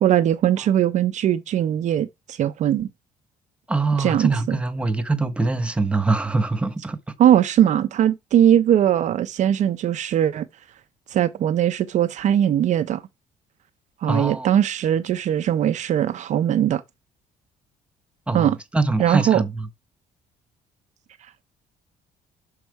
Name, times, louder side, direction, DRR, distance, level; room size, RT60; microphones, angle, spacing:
voice 1, 0.0-2.9 4.0-4.6 7.2-10.5 11.1-13.0 14.0-16.8 18.3-18.6 19.0-19.4, right 10 dB, 50° right, 0.5 m, -20 dB
voice 2, 3.7-7.0 14.1-14.5 18.3-19.7, right 3 dB, 5° right, 0.8 m, -23 dB
6.2 x 4.6 x 4.6 m
cardioid pair, 135°, 15 cm